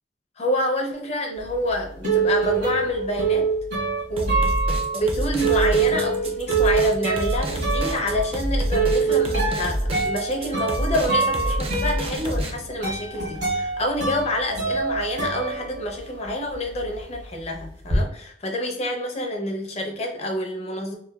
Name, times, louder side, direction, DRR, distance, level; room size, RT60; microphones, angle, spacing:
voice 1, 0.4-3.5 4.1-4.5 4.9-21.0, left 1 dB, 40° left, 2 dB, 0.6 m, -27 dB
sound 1, 1.5-16.3 16.6-18.0, right 4 dB, 70° right, 1.1 m, -25 dB
sound 2, 4.2-12.5, equal, 35° right, 0.4 m, -27 dB
3.0 x 2.2 x 2.3 m, 0.64 s
head